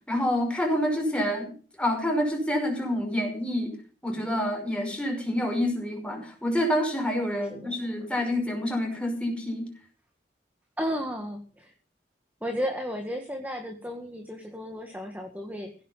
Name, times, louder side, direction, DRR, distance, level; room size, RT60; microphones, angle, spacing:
voice 1, 0.1-1.5 1.8-3.7 4.0-9.7, left 1 dB, 5° left, 2 dB, 5.6 m, -27 dB
voice 2, 7.2-7.8 10.8-11.7 12.4-15.8, equal, 10° right, 3 dB, 1.9 m, -34 dB
16.5 x 10.0 x 5.7 m, 0.39 s
head